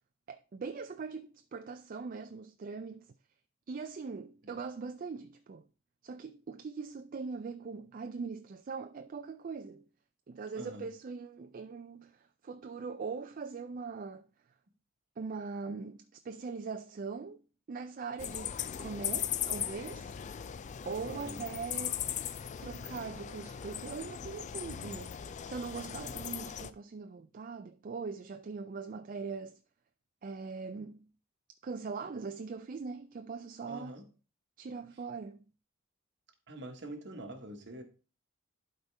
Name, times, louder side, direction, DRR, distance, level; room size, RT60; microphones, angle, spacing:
voice 1, 0.3-3.1 3.7-5.7 6.0-9.8 10.3-14.3 15.2-17.4 17.7-20.1 20.8-22.0 22.6-25.1 25.5-29.6 30.2-31.0 31.6-34.0 34.6-35.4, right 4 dB, 40° right, 0.4 m, -41 dB
voice 2, 10.5-10.8 21.0-21.4 33.7-34.0 36.5-37.8, right 1 dB, 55° right, 1.3 m, -45 dB
sound 1, 18.2-26.7, left 9 dB, 35° left, 0.3 m, -38 dB
11.5 x 4.4 x 3.3 m
head